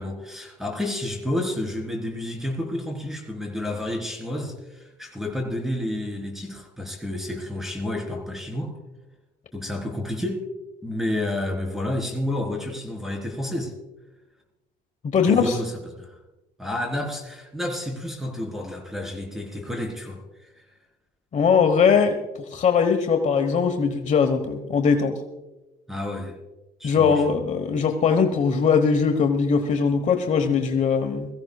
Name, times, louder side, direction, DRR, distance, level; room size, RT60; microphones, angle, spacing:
voice 1, 0.0-8.7 9.5-10.4 10.8-13.7 15.2-16.2 16.6-20.5 25.9-26.4 26.8-27.4, left 1 dB, ahead, 2 dB, 4.0 m, -30 dB
voice 2, 15.0-15.6 21.3-22.2 22.5-25.2 26.8-31.3, left 6 dB, 45° left, 6 dB, 1.2 m, -20 dB
22.5 x 15.0 x 2.4 m, 1.0 s
cardioid pair, 110°, 17 cm